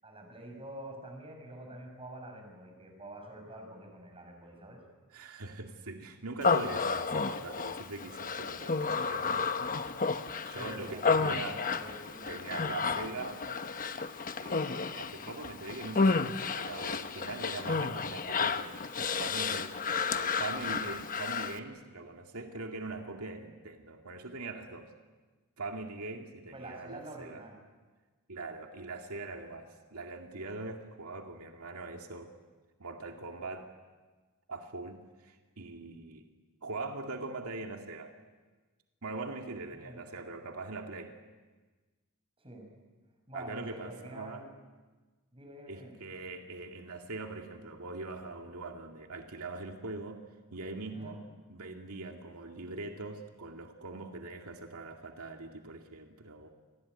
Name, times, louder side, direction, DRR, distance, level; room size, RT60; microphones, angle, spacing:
voice 1, 0.0-4.8 10.5-13.4 14.6-14.9 26.5-27.6 39.7-40.0 42.4-42.7 43.3-44.4 45.3-45.9 50.9-51.2, right 1 dB, 25° right, 3 dB, 6.9 m, -47 dB
voice 2, 5.1-9.7 10.4-11.6 12.3-13.4 14.4-19.7 20.1-24.9 25.6-27.4 28.3-32.3 32.8-33.7 34.5-36.2 36.6-38.1 39.0-41.1 43.3-44.4 45.7-50.2 50.5-51.2 51.5-56.5, right 3 dB, 85° right, 3 dB, 2.3 m, -42 dB
Human voice, 6.4-21.6, left 4 dB, 40° left, 1.0 m, -32 dB
27.5 x 20.5 x 9.6 m, 1.3 s
head